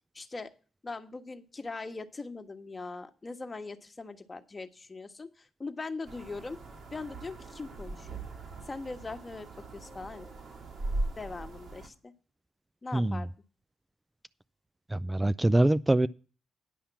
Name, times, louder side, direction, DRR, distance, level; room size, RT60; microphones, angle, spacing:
voice 1, 0.1-0.5 0.8-6.6 6.9-8.2 8.7-9.5 9.7-10.3 11.2-12.1 12.8-13.3, left 3 dB, 30° left, 1.4 m, -41 dB
sound 1, 6.1-11.9, right 2 dB, 60° right, 2.5 m, -39 dB
voice 2, 12.9-13.3 14.9-16.1, right 1 dB, 15° right, 0.4 m, -24 dB
10.5 x 5.7 x 7.1 m
hypercardioid pair, 45°, 0 cm